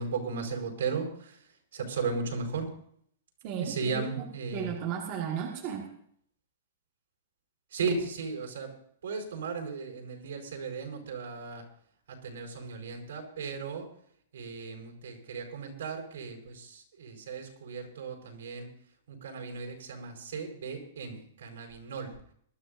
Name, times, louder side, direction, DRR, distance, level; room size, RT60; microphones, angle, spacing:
voice 1, 0.0-1.4 1.7-2.7 3.6-4.7 7.7-8.7 9.0-11.6 12.1-13.9 14.3-18.7 19.1-22.1, right 4 dB, 80° right, 3 dB, 4.5 m, -36 dB
voice 2, 3.4-5.9, right 8 dB, 30° right, -1 dB, 1.7 m, -35 dB
21.5 x 13.5 x 2.6 m, 0.64 s
supercardioid pair, 180°, 0 cm